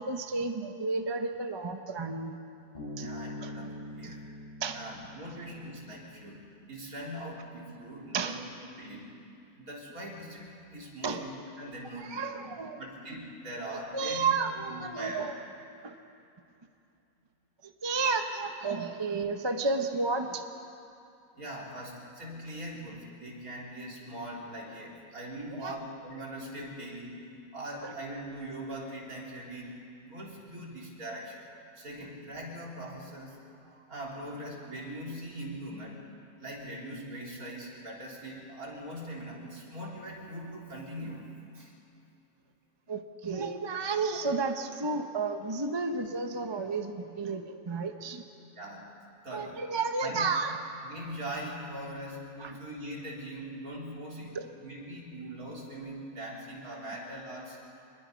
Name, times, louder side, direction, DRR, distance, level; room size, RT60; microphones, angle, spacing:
voice 1, 0.0-2.4 3.0-3.1 3.4-3.5 4.0-4.2 4.6-4.8 8.1-8.4 11.0-11.2 12.0-12.8 13.7-15.3 15.8-15.9 17.6-20.4 25.5-25.8 27.8-27.9 42.9-48.2 49.3-50.6 52.4-52.6 54.3-54.5, right 4 dB, 25° right, 6 dB, 0.7 m, -32 dB
Bass guitar, 2.7-6.2, left 1 dB, 30° left, 6.1 m, -43 dB
voice 2, 3.0-4.2 4.7-6.4 6.7-8.4 8.8-9.1 9.6-12.2 12.8-14.3 14.7-15.3 21.3-27.3 27.5-31.4 31.8-36.0 36.4-41.3 41.5-41.7 48.5-48.9 49.2-49.5 50.0-50.2 50.8-57.6, right 1 dB, 65° right, -3 dB, 3.8 m, -41 dB
25.0 x 21.0 x 5.2 m, 2.5 s
omnidirectional pair, 1.6 m